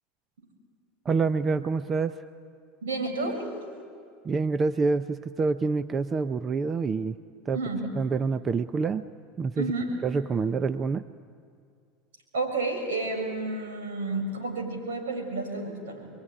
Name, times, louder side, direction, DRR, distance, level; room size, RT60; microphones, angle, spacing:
voice 1, 1.0-2.2 4.2-7.2 7.5-7.6 8.0-9.1 9.4-9.7 10.0-11.0, right 4 dB, 30° right, 12 dB, 0.7 m, -27 dB
voice 2, 2.8-3.4 7.5-7.8 9.6-9.9 12.3-16.1, right 3 dB, 80° right, 2 dB, 6.7 m, -31 dB
26.0 x 22.5 x 10.0 m, 2.2 s
hypercardioid pair, 85°, 0 cm